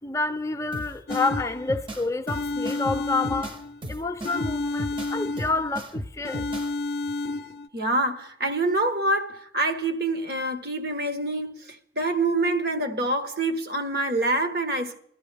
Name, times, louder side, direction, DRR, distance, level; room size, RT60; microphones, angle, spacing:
voice 1, 0.0-3.6 3.9-6.4, left 3 dB, 15° left, 0.6 m, -28 dB
sound 1, 0.7-6.7, equal, 30° right, 0.9 m, -36 dB
sound 2, 1.1-1.9 2.3-3.9 4.2-5.8 6.2-7.7, left 2 dB, 65° left, 0.5 m, -31 dB
voice 2, 7.7-15.0, right 2 dB, 60° right, 1.5 m, -26 dB
22.0 x 14.0 x 3.5 m
head